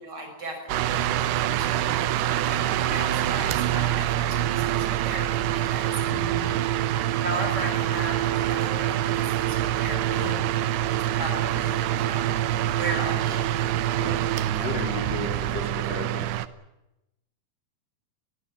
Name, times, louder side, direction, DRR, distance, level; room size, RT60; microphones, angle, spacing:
voice 1, 0.0-2.0 2.4-5.9 7.2-10.3 10.9-12.3 12.7-13.6 14.5-14.7, right 2 dB, 25° right, 4 dB, 6.4 m, -36 dB
sound 1, 0.7-16.5, right 12 dB, 90° right, 3.0 m, -25 dB
voice 2, 6.1-6.6 10.2-10.3 14.0-14.2 14.6-16.2, left 2 dB, 40° left, 3 dB, 5.2 m, -34 dB
23.0 x 16.0 x 9.7 m, 0.93 s
omnidirectional pair, 4.5 m